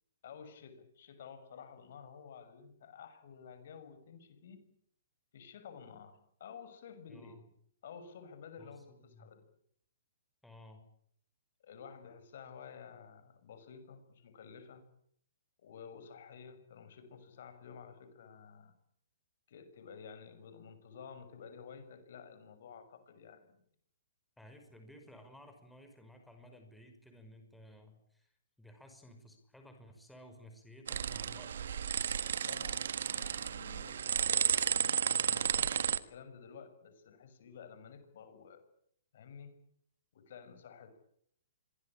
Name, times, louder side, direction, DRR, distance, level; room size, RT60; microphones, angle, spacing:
voice 1, 0.2-4.6 5.3-7.4 7.8-9.4 11.6-14.8 15.6-18.7 19.5-23.6 32.4-38.6 39.1-39.5 40.1-41.0, left 6 dB, 60° left, 11 dB, 6.4 m, -52 dB
voice 2, 7.1-7.4 8.6-9.3 10.4-10.8 24.4-28.3 28.6-31.9, left 1 dB, 5° left, 5 dB, 5.8 m, -56 dB
sound 1, 30.9-36.0, right 8 dB, 70° right, 1.6 m, -32 dB
26.5 x 22.5 x 8.9 m, 0.67 s
hypercardioid pair, 130°, 0 cm